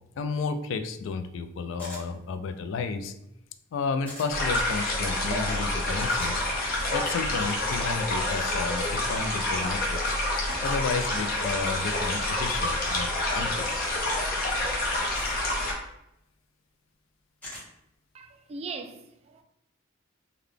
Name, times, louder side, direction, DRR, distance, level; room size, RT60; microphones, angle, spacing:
voice 1, 0.2-3.1 3.7-6.4 6.9-10.2 10.6-13.7, left 4 dB, 70° left, 0.3 m, -32 dB
sound 1, 1.8-2.1 4.1-4.3 6.1-6.3 8.3-8.5 10.6-10.8 12.8-13.1 15.1-15.4 17.4-17.7, left 1 dB, 5° left, 1.3 m, -43 dB
sound 2, 4.3-15.7, left 1 dB, 50° left, 0.8 m, -28 dB
voice 2, 18.1-19.4, right 4 dB, 30° right, 0.3 m, -40 dB
3.8 x 2.2 x 3.2 m
head